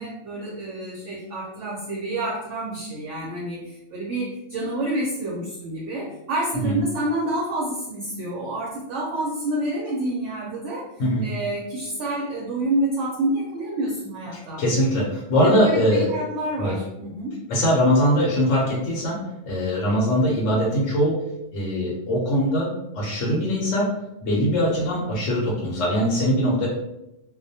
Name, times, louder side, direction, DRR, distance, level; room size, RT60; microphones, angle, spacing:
voice 1, 0.0-10.9 11.2-14.6 15.4-17.3, right 1 dB, 65° right, -3 dB, 0.8 m, -28 dB
voice 2, 14.6-16.1 16.6-16.8 17.5-21.2 21.5-22.7 22.9-23.9 24.2-26.7, equal, 65° left, -4 dB, 0.9 m, -21 dB
2.3 x 2.1 x 2.6 m, 0.90 s
omnidirectional pair, 1.5 m